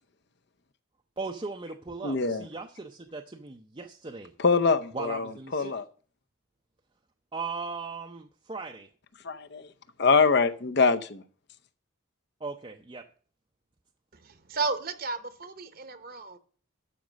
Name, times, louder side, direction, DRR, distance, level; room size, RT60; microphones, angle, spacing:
voice 1, 1.2-4.3 4.9-5.7 7.3-8.9 12.4-13.1, right 4 dB, 25° right, 0.5 m, -38 dB
voice 2, 2.0-2.5 4.4-5.8 9.2-9.7 10.0-11.2, left 4 dB, 50° left, 0.7 m, -24 dB
voice 3, 14.1-16.4, right 4 dB, 45° right, 0.9 m, -33 dB
12.5 x 5.1 x 6.3 m
head